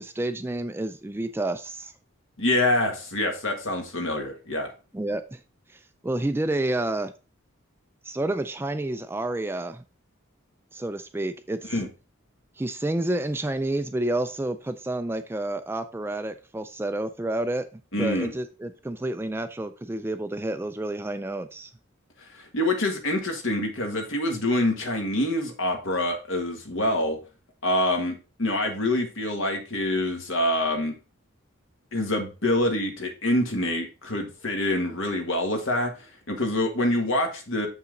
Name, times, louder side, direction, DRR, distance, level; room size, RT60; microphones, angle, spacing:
voice 1, 0.0-1.9 4.9-5.4 5.7-7.1 8.0-9.8 10.7-11.8 12.6-21.7, right 1 dB, 10° right, 10 dB, 0.3 m, -29 dB
voice 2, 2.4-4.7 11.7-11.9 17.9-18.3 22.3-27.2 27.6-30.9 31.9-35.9 36.3-37.7, left 1 dB, 65° left, 3 dB, 1.6 m, -26 dB
6.9 x 5.6 x 3.8 m, 0.33 s
head